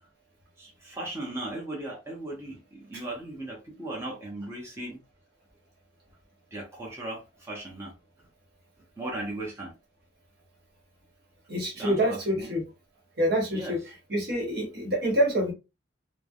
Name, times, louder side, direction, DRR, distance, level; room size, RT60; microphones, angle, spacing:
voice 1, 0.6-5.0 6.5-7.9 9.0-9.7 11.8-12.5 13.5-13.7, right 1 dB, 15° right, 0.7 m, -37 dB
voice 2, 11.5-12.6 13.2-15.5, equal, 60° right, 1.2 m, -26 dB
3.2 x 2.0 x 2.3 m
head